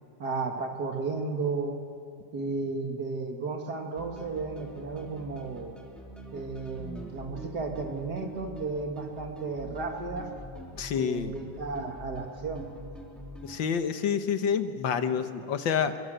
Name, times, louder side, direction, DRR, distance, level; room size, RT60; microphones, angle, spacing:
voice 1, 0.2-1.8 2.3-5.8 6.3-10.3 11.0-12.7, right 4 dB, 60° right, 3 dB, 2.5 m, -33 dB
sound 1, 4.0-13.6, right 1 dB, ahead, 3.3 m, -44 dB
voice 2, 10.8-11.3 13.4-16.0, left 7 dB, 75° left, 9 dB, 1.8 m, -28 dB
23.5 x 22.5 x 7.8 m, 2.5 s
omnidirectional pair, 2.0 m